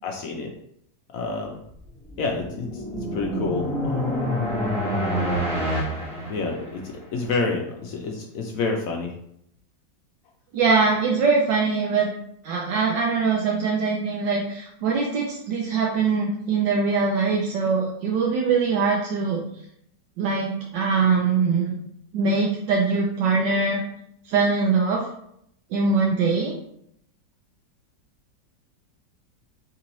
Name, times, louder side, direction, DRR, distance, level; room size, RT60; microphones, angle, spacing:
voice 1, 0.0-0.5 1.1-1.6 2.2-4.3 6.3-9.1, left 3 dB, 70° left, 1 dB, 0.8 m, -29 dB
sound 1, 1.8-7.0, equal, 5° left, 0.7 m, -27 dB
voice 2, 10.5-12.1 12.4-19.4 20.2-21.7 22.1-23.8 24.3-25.1 25.7-26.5, right 4 dB, 80° right, -1 dB, 1.3 m, -22 dB
3.9 x 3.7 x 3.0 m, 0.73 s
omnidirectional pair, 1.9 m